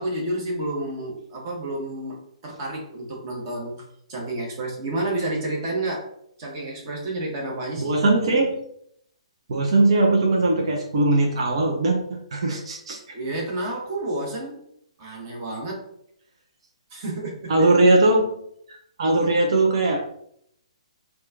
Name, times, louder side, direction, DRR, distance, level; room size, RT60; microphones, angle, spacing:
voice 1, 0.0-6.1 6.4-8.0 13.1-14.7 15.0-15.9 16.9-17.7, right 1 dB, 35° right, -2 dB, 1.2 m, -30 dB
voice 2, 7.8-8.6 9.5-13.0 17.5-18.3 18.7-20.0, right 2 dB, 55° right, 1 dB, 0.6 m, -20 dB
4.3 x 2.3 x 2.5 m, 0.71 s
figure-of-eight pair, 135°, 3 cm